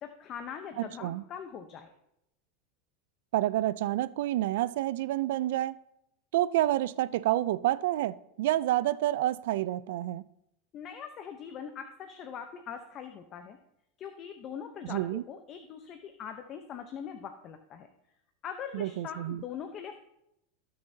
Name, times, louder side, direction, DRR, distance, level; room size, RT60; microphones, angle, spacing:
voice 1, 0.0-1.9 10.7-13.6 14.0-17.9 18.4-20.0, left 7 dB, 35° left, 0.7 m, -42 dB
voice 2, 0.8-1.2 3.3-5.8 6.3-10.2 14.8-15.2 18.7-19.4, right 14 dB, 75° right, 0.4 m, -29 dB
17.0 x 6.7 x 2.8 m
supercardioid pair, 135°, 0 cm